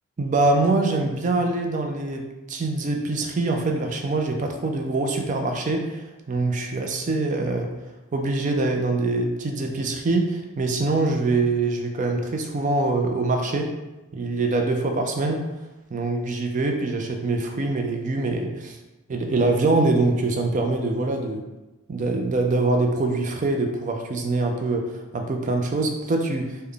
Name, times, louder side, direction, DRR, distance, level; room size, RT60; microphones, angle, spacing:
voice 1, 0.2-7.7 8.1-13.7 14.1-15.4 15.9-18.8 19.1-21.4 21.9-26.6, right 2 dB, 35° right, 3 dB, 0.4 m, -24 dB
3.3 x 2.1 x 3.7 m, 1.1 s
head